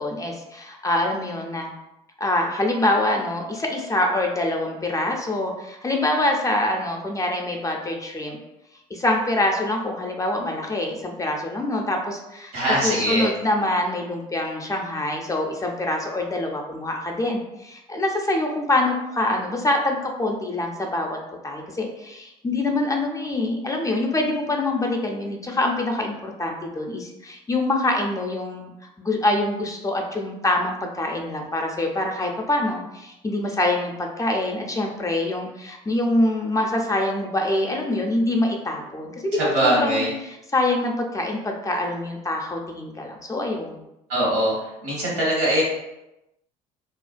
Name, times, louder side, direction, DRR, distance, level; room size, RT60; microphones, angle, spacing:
voice 1, 0.0-1.7 2.2-8.4 8.9-12.5 12.8-21.2 21.4-28.7 29.0-43.8, left 1 dB, 20° left, 1 dB, 0.4 m, -25 dB
voice 2, 12.5-13.3 39.3-40.1 44.1-44.5 44.8-45.6, right 1 dB, 85° right, -4 dB, 1.1 m, -22 dB
2.4 x 2.1 x 2.4 m, 0.90 s
hypercardioid pair, 65°, 18 cm